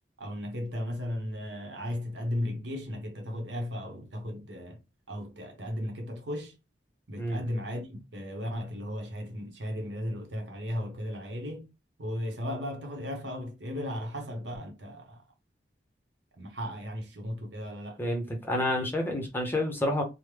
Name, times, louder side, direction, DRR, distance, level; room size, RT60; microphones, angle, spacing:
voice 1, 0.2-4.8 5.1-6.6 7.1-11.7 12.0-15.2 16.4-18.0, left 1 dB, 70° right, 0.9 m, -36 dB
voice 2, 18.0-20.0, left 1 dB, 10° left, 0.7 m, -29 dB
3.2 x 2.1 x 3.2 m
head